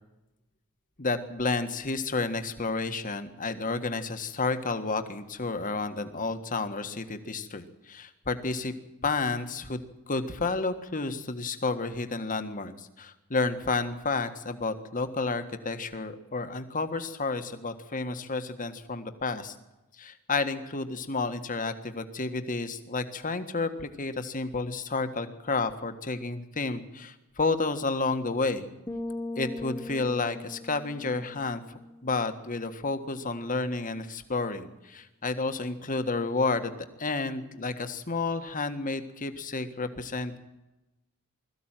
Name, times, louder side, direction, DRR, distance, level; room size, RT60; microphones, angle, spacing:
voice 1, 1.0-8.7 9.0-9.8 10.1-19.5 20.0-28.7 29.4-31.6 32.0-36.7 37.0-40.4, left 3 dB, 35° left, 8 dB, 1.6 m, -31 dB
sound 1, 28.9-32.6, left 2 dB, 10° left, 0.9 m, -39 dB
21.5 x 14.5 x 9.1 m, 1.0 s
head